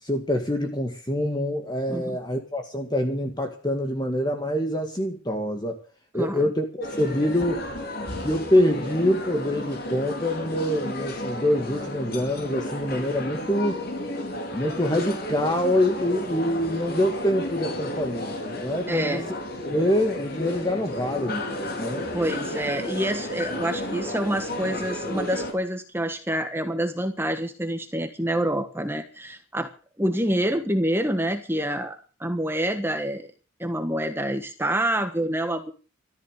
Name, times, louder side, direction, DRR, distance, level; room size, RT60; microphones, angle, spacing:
voice 1, 0.0-5.8 6.1-7.7 8.2-13.8 14.5-19.2 19.7-22.1, left 1 dB, 20° left, 2.0 m, -25 dB
voice 2, 6.2-6.5 18.9-19.3 22.1-29.7 30.0-33.3 33.6-35.7, right 1 dB, 10° right, 1.4 m, -27 dB
sound 1, 6.8-25.5, left 1 dB, 45° left, 4.2 m, -33 dB
14.5 x 13.5 x 6.6 m
head